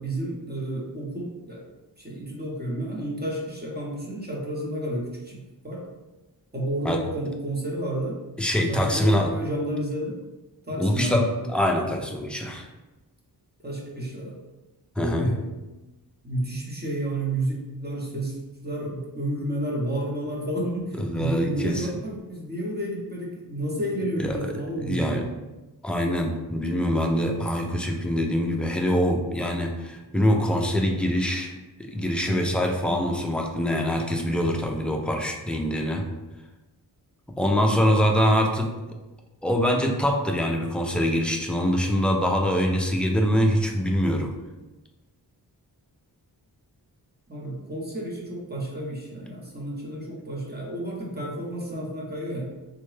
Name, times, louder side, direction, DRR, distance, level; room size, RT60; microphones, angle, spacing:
voice 1, 0.0-1.7 2.0-5.4 5.6-5.8 6.5-8.2 8.7-10.2 10.7-11.3 13.6-14.4 15.0-15.4 16.2-18.4 18.6-25.2 47.3-52.5, right 1 dB, 25° right, -3 dB, 0.7 m, -30 dB
voice 2, 8.4-9.3 10.8-12.7 15.0-15.3 20.9-21.9 24.2-25.2 25.8-31.5 31.8-36.0 37.4-39.0 39.4-44.3, equal, 5° left, 1 dB, 0.3 m, -24 dB
3.6 x 2.1 x 3.2 m, 1.1 s
wide cardioid pair, 105°, 40 cm